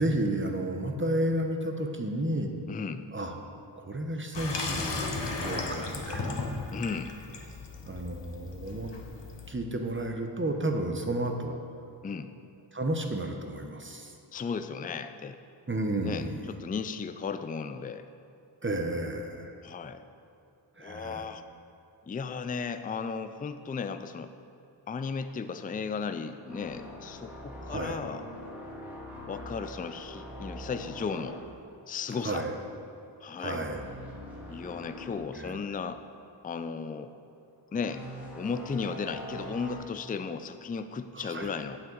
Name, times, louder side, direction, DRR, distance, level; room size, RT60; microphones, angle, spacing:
voice 1, 0.0-2.5 3.1-3.3 3.8-6.4 7.9-8.9 9.5-11.6 12.7-14.1 15.7-16.4 18.6-19.5 20.8-21.3 27.7-28.0 32.2-32.6 33.4-33.8 35.3-35.6 41.1-41.5, right 1 dB, 25° right, 4 dB, 0.9 m, -32 dB
voice 2, 2.7-3.1 6.7-7.1 12.0-12.3 14.3-15.4 16.0-18.1 19.6-20.0 20.8-21.4 22.1-24.3 24.9-28.2 29.3-31.4 31.9-32.4 33.2-33.7 34.5-36.0 36.4-37.1 37.7-38.0 38.4-41.8, left 5 dB, 20° left, 10 dB, 0.3 m, -35 dB
Water tap faucet / Sink (filling or washing), 4.3-9.5, left 3 dB, 60° left, 0.9 m, -35 dB
sound 1, 26.5-32.6 32.8-33.1 33.6-35.1 35.6-35.7 37.8-39.7, equal, 5° right, 2.0 m, -43 dB
8.5 x 7.7 x 3.9 m, 2.7 s
wide cardioid pair, 50°, 48 cm